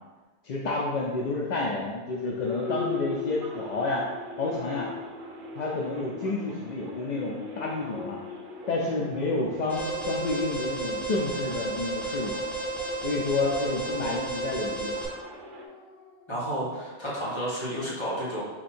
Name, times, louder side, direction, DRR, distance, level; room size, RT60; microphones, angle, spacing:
voice 1, 0.4-4.0 4.4-4.9 5.6-8.2 8.7-12.4 13.0-14.9, left 3 dB, 55° left, -2 dB, 0.5 m, -30 dB
sound 1, 2.1-16.3, left 5 dB, 75° left, 0.9 m, -40 dB
sound 2, 2.4-15.7, right 3 dB, 55° right, 0.7 m, -46 dB
Alarm, 9.7-15.1, right 2 dB, ahead, 0.9 m, -32 dB
voice 2, 16.3-18.4, equal, 25° left, -8 dB, 1.5 m, -31 dB
4.3 x 2.7 x 4.2 m, 1.3 s
omnidirectional pair, 1.1 m